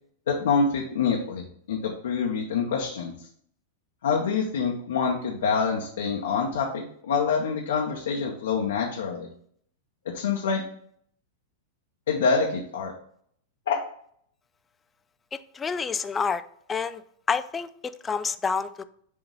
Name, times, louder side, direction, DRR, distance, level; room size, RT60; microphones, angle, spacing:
voice 1, 0.3-3.3 4.0-9.3 10.0-10.6 12.1-12.9 13.7-13.8, left 5 dB, 65° left, -1 dB, 0.8 m, -26 dB
voice 2, 15.5-16.4 16.7-17.0 17.3-17.7 18.0-18.8, left 5 dB, 15° left, 12 dB, 0.3 m, -27 dB
6.4 x 2.9 x 5.3 m, 0.64 s
figure-of-eight pair, 95°, 0 cm